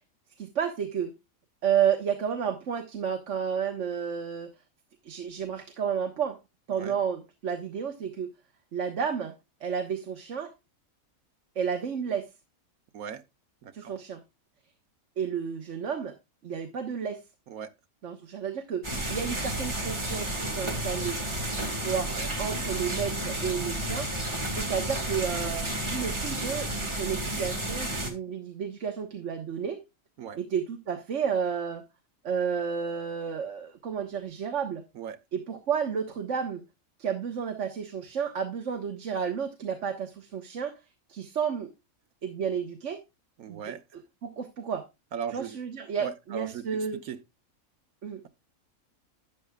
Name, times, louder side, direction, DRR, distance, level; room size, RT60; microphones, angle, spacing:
voice 1, 0.4-1.1 1.6-4.5 5.0-6.4 6.7-8.3 8.7-9.3 9.6-10.5 11.5-12.3 13.7-14.2 15.2-16.1 16.4-17.2 18.0-21.2 21.8-24.1 24.5-29.8 30.4-31.8 32.2-34.8 35.3-36.6 37.0-40.7 41.1-41.7 42.2-43.0 43.5-43.7 44.2-44.9 45.3-47.0 48.0-48.2, right 7 dB, 60° right, 1.4 m, -31 dB
voice 2, 13.6-13.9 17.5-17.7 21.9-22.3 30.2-30.4 34.9-35.2 43.4-43.8 45.1-45.6 46.0-47.2, right 8 dB, 85° right, 1.4 m, -38 dB
sound 1, 18.8-28.1, right 1 dB, 20° right, 1.7 m, -31 dB
12.5 x 9.2 x 2.3 m
omnidirectional pair, 1.5 m